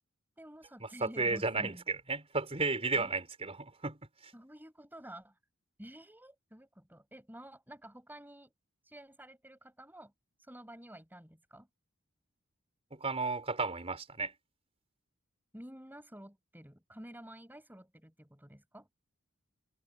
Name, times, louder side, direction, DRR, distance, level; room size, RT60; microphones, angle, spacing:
voice 1, 0.4-1.8 2.9-3.2 4.3-5.4 5.8-8.5 8.9-10.1 10.5-11.7 15.5-18.9, right 1 dB, 10° right, 7.6 m, -50 dB
voice 2, 1.0-4.0 12.9-14.3, right 3 dB, 30° right, 4.4 m, -33 dB
head